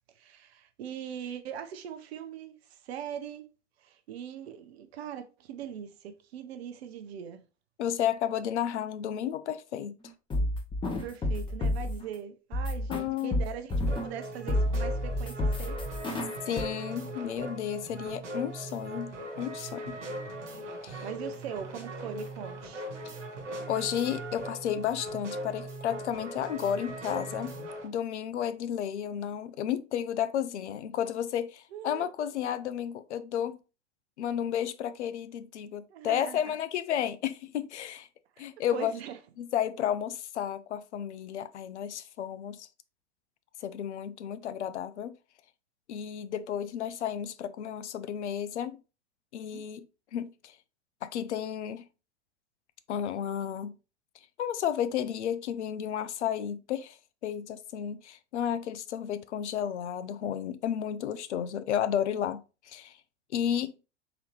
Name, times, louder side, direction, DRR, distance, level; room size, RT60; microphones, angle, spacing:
voice 1, 0.2-3.5 3.8-7.4 11.0-13.7 14.0-15.8 21.0-22.9 31.7-32.1 35.9-36.5 38.4-39.2 49.5-49.6, right 9 dB, 60° right, 0.7 m, -41 dB
voice 2, 7.8-9.9 12.9-13.4 16.5-20.0 20.8-21.0 23.7-27.6 27.8-33.6 34.2-38.1 38.4-38.9 39.4-42.7 43.6-45.2 45.9-48.8 49.3-49.9 50.1-50.6 51.0-51.9 52.9-53.7 54.4-63.0 63.3-63.7, left 9 dB, 70° left, 0.5 m, -32 dB
sound 1, 10.0-12.1 12.5-14.2 14.5-16.6, left 1 dB, 15° left, 0.8 m, -30 dB
sound 2, 13.9-27.9, right 1 dB, 80° right, 1.2 m, -39 dB
3.9 x 2.8 x 3.1 m
figure-of-eight pair, 95°, 36 cm